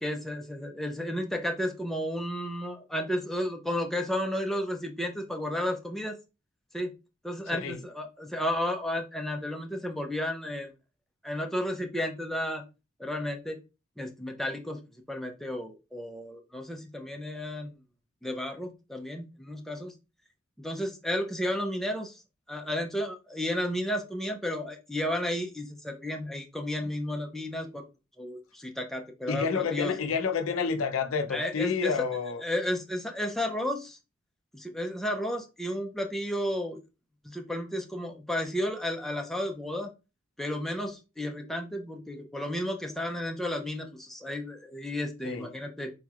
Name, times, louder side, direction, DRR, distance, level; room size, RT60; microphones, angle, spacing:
voice 1, 0.0-6.2 6.7-6.9 7.2-10.7 11.2-12.6 13.0-13.6 14.0-14.8 15.1-17.7 18.2-19.9 20.6-22.2 22.5-27.9 28.2-29.9 31.3-31.9 32.4-34.0 34.5-36.8 37.2-39.9 40.4-45.9, left 1 dB, ahead, 0.5 m, -32 dB
voice 2, 29.3-32.4 45.2-45.5, left 5 dB, 85° left, 0.5 m, -29 dB
4.1 x 3.0 x 2.3 m
head